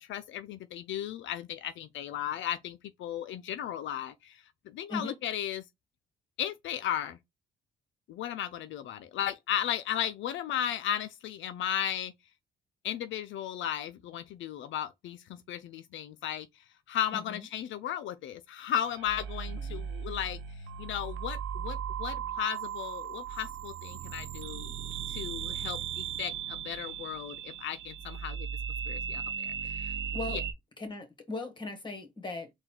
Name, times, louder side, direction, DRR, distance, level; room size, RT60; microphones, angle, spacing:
voice 1, 0.0-5.6 6.4-7.2 8.1-12.1 12.8-16.5 16.9-20.4 20.8-24.7 25.1-28.5 28.9-29.9 30.3-30.4, left 10 dB, 75° left, 0.4 m, -35 dB
voice 2, 17.1-17.5 19.5-19.9 29.6-29.7 30.1-30.4 30.8-32.5, left 3 dB, 25° left, 1.4 m, -39 dB
sound 1, 18.9-30.5, right 8 dB, 75° right, 0.6 m, -37 dB
3.9 x 2.3 x 4.4 m
cardioid pair, 90°, 20 cm